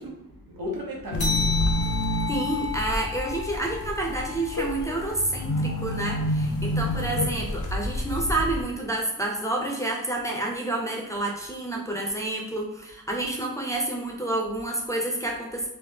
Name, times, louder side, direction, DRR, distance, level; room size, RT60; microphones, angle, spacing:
voice 1, 0.0-1.8 6.8-7.4, equal, 75° right, -1 dB, 1.0 m, -36 dB
sound 1, 1.1-8.6, left 1 dB, 60° left, 0.6 m, -29 dB
sound 2, 1.2-6.1, left 5 dB, 90° left, 0.8 m, -33 dB
voice 2, 2.3-15.7, right 2 dB, 10° left, -2 dB, 0.5 m, -29 dB
3.3 x 2.6 x 3.6 m, 0.91 s
wide cardioid pair, 120°, 35 cm